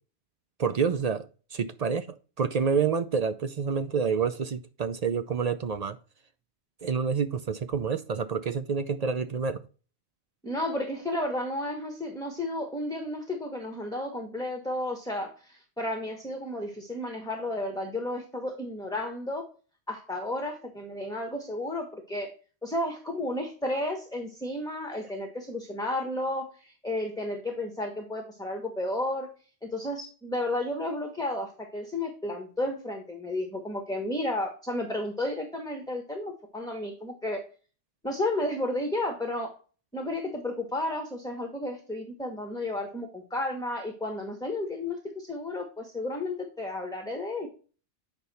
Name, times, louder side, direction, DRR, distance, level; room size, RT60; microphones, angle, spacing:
voice 1, 0.6-2.1 2.4-6.0 6.8-9.6, right 6 dB, 50° right, 0.5 m, -28 dB
voice 2, 10.4-19.4 19.9-22.3 22.6-29.3 29.6-37.4 38.0-39.5 39.9-47.5, left 1 dB, 5° left, 1.1 m, -32 dB
8.2 x 5.2 x 4.1 m
omnidirectional pair, 1.2 m